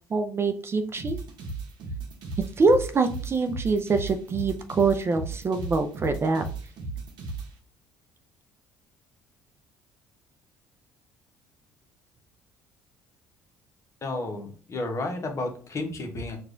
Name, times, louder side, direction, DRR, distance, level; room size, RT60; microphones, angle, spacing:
voice 1, 0.1-1.2 2.6-6.4, right 3 dB, 30° right, 8 dB, 0.4 m, -24 dB
sound 1, 1.0-7.5, right 3 dB, 70° right, 0.8 m, -36 dB
voice 2, 14.0-16.4, left 2 dB, 40° left, 3 dB, 1.0 m, -32 dB
4.7 x 2.4 x 2.5 m, 0.42 s
supercardioid pair, 80°, 8 cm